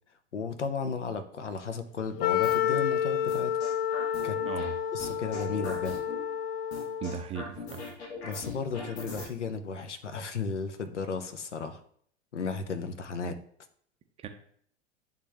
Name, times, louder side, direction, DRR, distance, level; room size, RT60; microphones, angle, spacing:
voice 1, 0.3-3.6 4.0-4.4 4.9-6.0 8.2-11.8 12.3-13.4, left 5 dB, 75° left, 9 dB, 0.8 m, -34 dB
Wind instrument woodwind instrument, 2.2-7.3, left 9 dB, 35° left, 0.5 m, -30 dB
sound 1, 2.4-2.8 3.3-4.7 5.0-6.2 6.7-9.3, left 3 dB, 60° left, 1.8 m, -40 dB
voice 2, 4.4-4.8 7.0-7.8 14.2-14.3, right 7 dB, 15° right, 5 dB, 0.5 m, -37 dB
9.6 x 3.6 x 3.3 m, 0.63 s
figure-of-eight pair, 90°, 35 cm